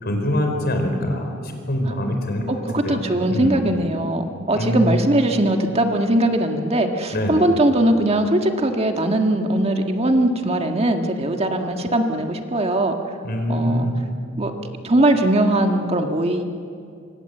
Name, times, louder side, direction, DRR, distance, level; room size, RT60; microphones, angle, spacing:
voice 1, 0.0-2.6 2.8-3.0 3.3-3.7 4.5-5.0 7.1-7.4 13.2-13.9, left 1 dB, 50° left, 4 dB, 4.5 m, -24 dB
voice 2, 2.5-12.9 13.5-13.9 14.4-14.5 14.8-16.4, right 1 dB, 30° right, 4 dB, 1.7 m, -20 dB
27.0 x 24.5 x 7.9 m, 2.4 s
head